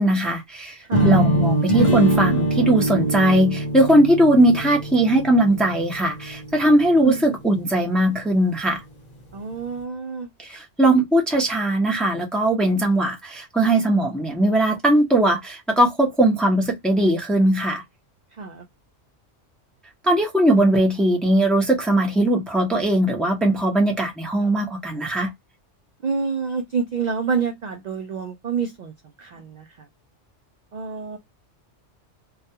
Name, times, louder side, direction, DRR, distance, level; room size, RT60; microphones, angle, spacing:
voice 1, 0.0-8.8 10.4-17.8 20.0-25.3, right 1 dB, ahead, 0.5 m, -19 dB
sound 1, 0.9-6.8, right 1 dB, 40° left, 0.8 m, -23 dB
voice 2, 9.3-10.3 18.4-18.7 26.0-28.9 29.2-29.7 30.7-31.2, right 5 dB, 60° right, 0.4 m, -27 dB
2.3 x 2.2 x 2.7 m
omnidirectional pair, 1.2 m